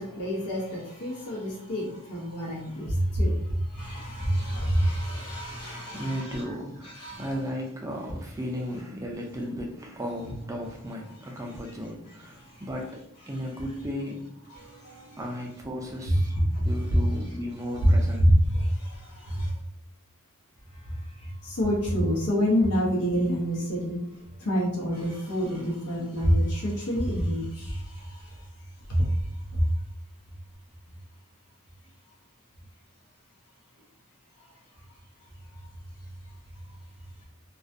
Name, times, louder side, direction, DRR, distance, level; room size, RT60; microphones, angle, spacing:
voice 1, 0.0-6.4 6.8-7.2 14.6-15.2 16.1-16.2 16.5-16.6 16.9-17.0 17.8-17.9 18.2-19.5 20.8-24.0 24.4-28.4 28.9-29.2 29.5-29.7, equal, 85° left, 0.8 m, -27 dB
voice 2, 5.5-18.3, equal, 15° right, 0.3 m, -35 dB
2.3 x 2.1 x 2.5 m
head